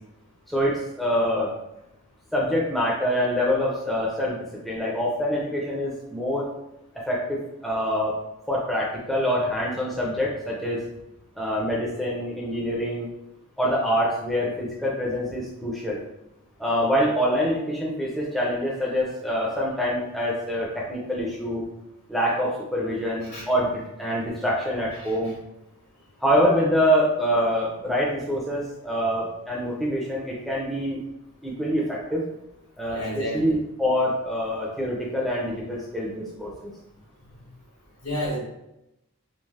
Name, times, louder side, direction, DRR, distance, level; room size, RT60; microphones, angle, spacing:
voice 1, 0.5-1.5 2.3-4.4 4.6-6.5 6.9-8.1 8.5-10.8 11.4-13.1 13.6-16.0 16.6-21.7 22.1-25.3 26.2-31.0 31.4-32.2 32.8-36.7, equal, ahead, -5 dB, 0.4 m, -25 dB
voice 2, 25.0-25.3 32.9-33.5 37.3-37.4 38.0-38.4, equal, 90° left, -5 dB, 1.3 m, -31 dB
3.2 x 2.4 x 2.4 m, 0.88 s
head